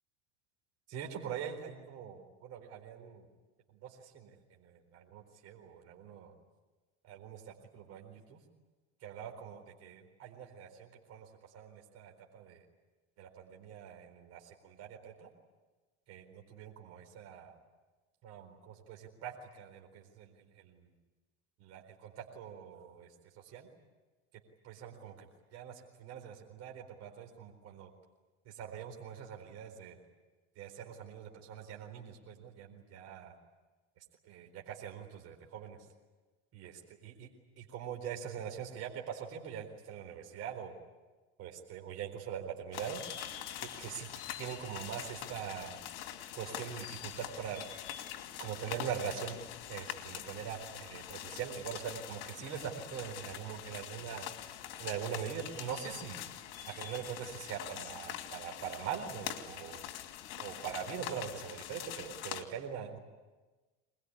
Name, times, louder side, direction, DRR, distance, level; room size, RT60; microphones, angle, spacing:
voice 1, 0.9-3.3 3.8-4.3 4.6-6.3 7.0-8.4 9.0-11.3 11.5-12.6 13.2-15.3 16.1-17.5 18.2-20.3 20.6-20.8 21.6-23.1 23.5-23.7 24.6-25.3 25.5-27.9 28.6-30.0 30.6-33.3 34.3-35.8 36.5-37.3 37.6-40.7 41.4-43.0 43.6-44.1 44.4-45.8 46.3-47.6 48.4-49.4 49.7-54.3 54.8-56.2 56.7-59.8 60.4-63.0, right 8 dB, 50° right, 2 dB, 4.3 m, -43 dB
sound 1, 42.7-62.4, left 12 dB, 70° left, 2.7 m, -44 dB
24.0 x 21.0 x 9.8 m, 1.3 s
supercardioid pair, 130°, 32 cm